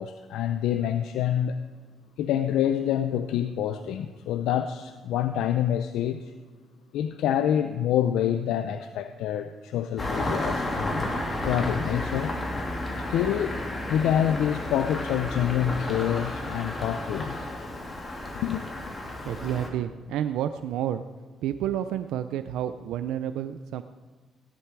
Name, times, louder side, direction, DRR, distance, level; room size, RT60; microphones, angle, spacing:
voice 1, 0.0-1.7 2.2-6.3 6.9-11.1 11.4-12.4 13.0-13.6 13.9-17.5 18.4-18.6, left 10 dB, 90° left, 0.6 m, -27 dB
Engine starting, 10.0-19.7, left 1 dB, 25° left, 3.0 m, -32 dB
voice 2, 19.1-21.0 21.4-23.8, right 10 dB, 90° right, 0.5 m, -30 dB
17.0 x 11.5 x 4.7 m
cardioid pair, 90°, 0 cm